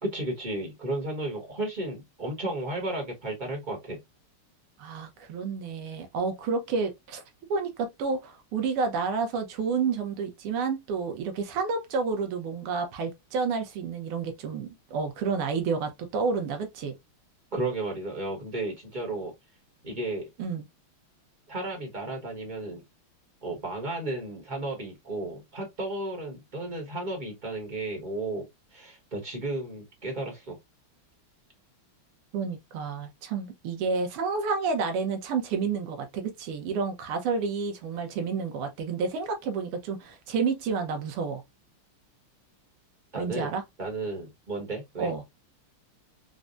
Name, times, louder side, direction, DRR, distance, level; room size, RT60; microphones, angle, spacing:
voice 1, 0.0-4.0 17.5-19.3 19.8-20.3 21.5-22.8 23.4-28.5 28.7-30.6 43.1-43.5 43.8-45.1, right 2 dB, 30° right, 1.0 m, -33 dB
voice 2, 4.8-7.2 7.5-16.9 20.4-20.6 32.3-41.4 43.2-43.6 45.0-45.2, right 5 dB, 85° right, 1.8 m, -30 dB
4.7 x 2.1 x 2.4 m
omnidirectional pair, 2.4 m